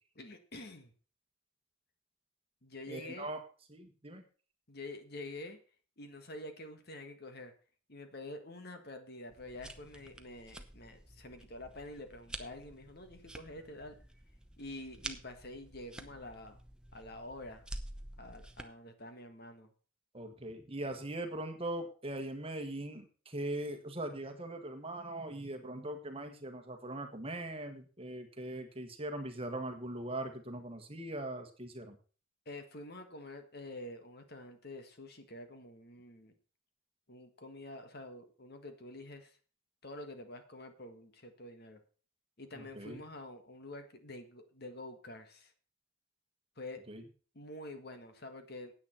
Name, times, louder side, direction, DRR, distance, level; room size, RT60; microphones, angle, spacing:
voice 1, 0.1-0.9 2.6-3.3 4.7-5.6 6.0-7.5 7.9-14.0 14.6-16.6 16.9-17.6 18.2-19.7 32.4-36.3 37.1-39.4 39.8-41.8 42.4-45.5 46.6-46.8 47.3-48.7, left 1 dB, 50° left, 7 dB, 1.6 m, -47 dB
voice 2, 2.9-3.4 3.7-4.2 20.1-32.0 42.5-43.0 46.9-47.0, right 1 dB, 25° right, 6 dB, 1.6 m, -41 dB
sound 1, 9.3-18.6, right 1 dB, 5° right, 0.8 m, -49 dB
9.6 x 8.8 x 5.8 m, 0.39 s
head